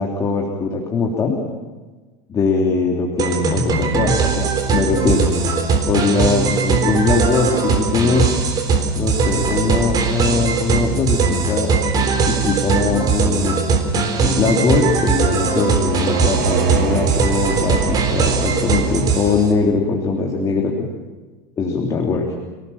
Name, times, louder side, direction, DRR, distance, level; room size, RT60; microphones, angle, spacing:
voice 1, 0.0-1.4 2.3-5.3 5.9-8.4 9.0-11.7 12.2-13.5 14.2-20.7 21.6-22.3, left 4 dB, 25° left, -1 dB, 3.4 m, -21 dB
sound 1, 3.2-19.5, right 4 dB, 30° right, 3.8 m, -19 dB
sound 2, 15.1-19.8, right 6 dB, 60° right, 4.5 m, -26 dB
29.0 x 19.0 x 7.4 m, 1.3 s
supercardioid pair, 140°, 13 cm